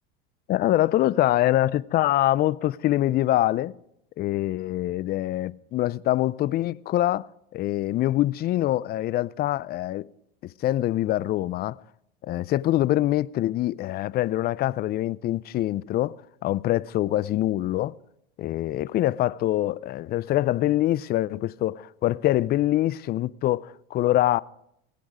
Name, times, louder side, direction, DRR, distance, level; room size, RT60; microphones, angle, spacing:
voice 1, 0.5-3.7 4.2-10.1 10.4-11.8 12.2-16.1 16.4-17.9 18.4-24.4, left 14 dB, 35° left, 0.4 m, -24 dB
17.0 x 10.5 x 4.9 m
supercardioid pair, 110°, 30 cm